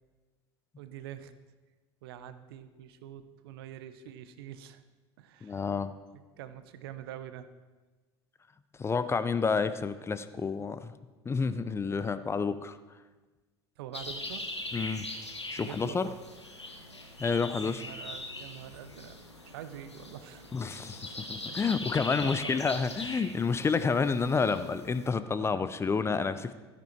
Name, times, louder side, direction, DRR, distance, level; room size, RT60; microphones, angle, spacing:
voice 1, 0.8-1.3 2.0-4.8 5.2-5.7 6.1-7.5 13.8-14.5 15.6-16.2 17.6-19.2 19.4-20.5 21.5-22.9, right 11 dB, 60° right, 12 dB, 0.7 m, -45 dB
voice 2, 5.4-5.9 8.8-10.9 11.3-12.8 14.7-15.1 15.5-16.1 17.2-17.8 20.5-26.5, left 5 dB, 20° left, 13 dB, 0.5 m, -29 dB
sound 1, 13.9-25.1, left 2 dB, 90° left, 1.0 m, -41 dB
13.0 x 10.5 x 4.5 m, 1.2 s
figure-of-eight pair, 70°, 14 cm